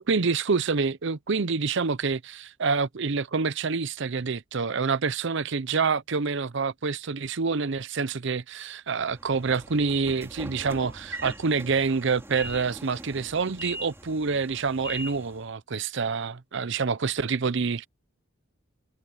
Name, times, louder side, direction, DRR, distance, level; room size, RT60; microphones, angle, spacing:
voice 1, 0.0-17.9, right 4 dB, 60° right, 0.7 m, -27 dB
Train / Sliding door, 9.0-15.5, equal, 10° right, 2.9 m, -41 dB
head